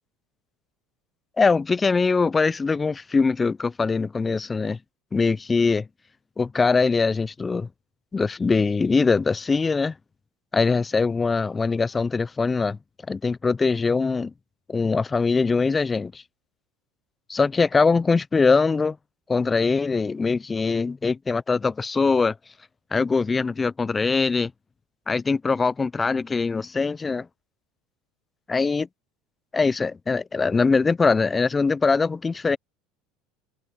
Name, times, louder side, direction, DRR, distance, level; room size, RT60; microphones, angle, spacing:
voice 1, 1.4-4.8 5.1-5.9 6.4-7.7 8.1-9.9 10.5-12.8 13.1-14.3 14.7-16.2 17.3-19.0 19.3-22.3 22.9-24.5 25.1-27.3 28.5-28.9 29.5-32.6, left 4 dB, 20° left, 0.8 m, -22 dB
open air
hypercardioid pair, 75°, 0 cm